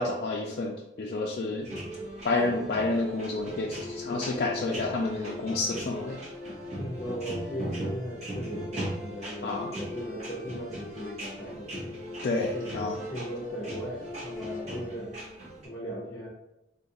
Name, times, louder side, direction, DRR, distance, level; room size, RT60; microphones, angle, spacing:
voice 1, 0.0-1.7 2.2-6.2 9.4-9.7 12.2-13.0, left 2 dB, 55° left, -2 dB, 0.3 m, -29 dB
sound 1, 1.6-15.7, equal, 35° right, 0.8 m, -38 dB
voice 2, 6.8-12.0 12.5-15.1 15.6-16.3, equal, 25° left, -4 dB, 0.6 m, -38 dB
3.7 x 2.4 x 2.7 m, 0.95 s
head